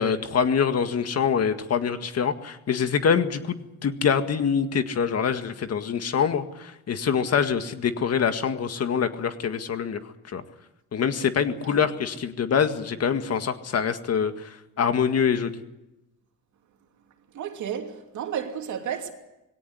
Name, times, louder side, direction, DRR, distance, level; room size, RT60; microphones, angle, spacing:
voice 1, 0.0-10.4 10.9-15.5, left 7 dB, 55° left, 1.9 m, -25 dB
voice 2, 17.3-19.1, right 8 dB, 75° right, 2.9 m, -32 dB
20.0 x 17.5 x 9.9 m
cardioid pair, 90°, 30 cm